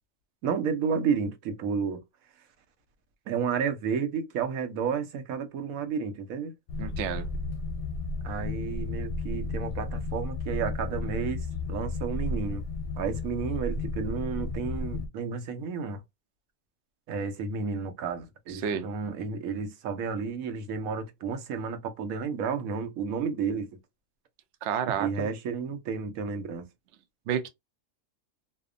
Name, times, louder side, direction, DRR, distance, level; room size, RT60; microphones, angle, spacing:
voice 1, 0.4-2.0 3.3-6.5 8.2-12.6 13.0-16.0 17.1-23.7 25.0-26.7, right 6 dB, 90° right, 1.1 m, -31 dB
sound 1, 6.7-15.1, left 3 dB, 65° left, 0.8 m, -33 dB
voice 2, 6.8-7.3 18.5-18.9 24.6-25.3 27.3-27.5, right 8 dB, 65° right, 0.8 m, -30 dB
2.7 x 2.1 x 2.4 m
omnidirectional pair, 1.4 m